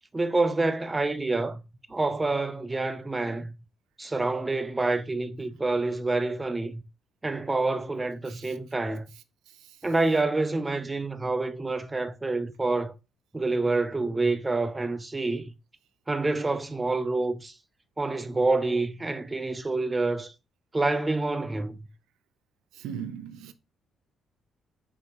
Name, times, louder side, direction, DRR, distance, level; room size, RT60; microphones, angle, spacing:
voice 1, 0.1-1.6 1.9-3.5 4.0-6.8 7.2-9.1 9.8-12.9 13.3-15.5 16.1-17.5 18.0-20.3 20.7-21.8, right 2 dB, 20° right, 0.5 m, -27 dB
voice 2, 22.8-23.5, right 8 dB, 90° right, 0.4 m, -38 dB
5.2 x 2.8 x 2.9 m
cardioid pair, 90°, 0 cm